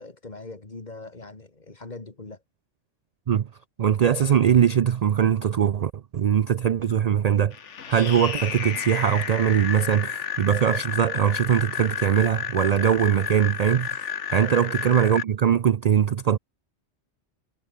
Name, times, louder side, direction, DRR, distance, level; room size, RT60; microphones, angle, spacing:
voice 1, 0.0-2.4 14.3-14.5, left 3 dB, 40° left, 2.3 m, -41 dB
voice 2, 3.8-7.5 7.9-16.4, right 8 dB, 55° right, 0.4 m, -21 dB
sound 1, 7.5-15.2, left 7 dB, 90° left, 1.6 m, -31 dB
omnidirectional pair, 1.2 m